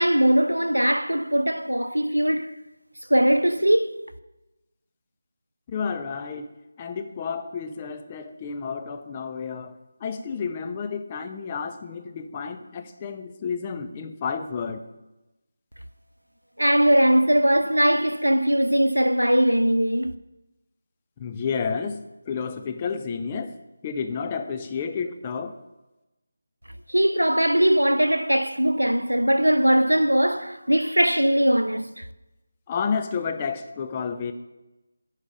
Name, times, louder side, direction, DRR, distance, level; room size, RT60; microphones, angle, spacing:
voice 1, 0.0-2.6 3.1-4.1 16.6-20.1 26.9-32.1, equal, 90° right, 0.5 m, -20 dB
voice 2, 5.7-6.5 6.8-14.9 21.2-22.0 22.3-23.5 23.8-25.5 32.7-34.3, left 5 dB, 20° left, 0.6 m, -31 dB
10.0 x 4.9 x 6.5 m
figure-of-eight pair, 160°, 0 cm